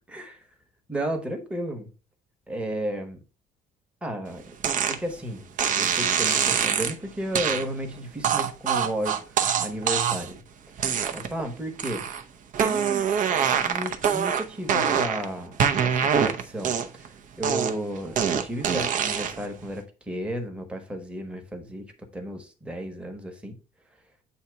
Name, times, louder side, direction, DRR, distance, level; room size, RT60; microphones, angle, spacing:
voice 1, 0.1-0.4 0.9-1.9 2.5-3.2 4.0-4.4 4.9-5.5 5.8-10.4 11.1-12.1 12.6-13.1 13.6-15.6 15.8-23.6, right 1 dB, 5° right, 1.1 m, -33 dB
sound 1, 4.6-5.0 5.6-6.9 7.3-7.6 8.2-10.4 10.8-11.4 11.8-12.2 12.5-15.3 15.6-17.1 17.4-19.5, right 7 dB, 45° right, 0.7 m, -24 dB
8.1 x 2.8 x 4.6 m
cardioid pair, 145°, 18 cm